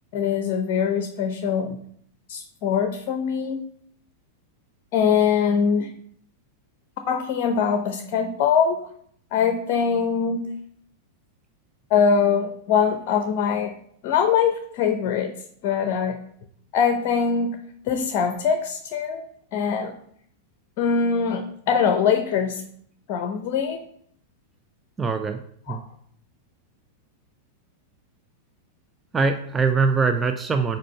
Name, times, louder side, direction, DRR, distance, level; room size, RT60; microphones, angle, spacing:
voice 1, 0.1-1.8 2.3-3.6 4.9-5.9 7.1-8.9 9.3-10.4 11.9-13.7 14.0-15.3 15.6-16.2 16.7-17.5 17.9-19.2 19.5-19.9 20.8-22.6 23.1-23.8 25.7-25.8, left 6 dB, 45° left, 7 dB, 0.6 m, -22 dB
voice 2, 25.0-25.4 25.7-25.8 29.1-30.8, right 4 dB, 15° right, 7 dB, 0.4 m, -22 dB
5.0 x 4.5 x 5.5 m, 0.67 s
figure-of-eight pair, 95°, 0 cm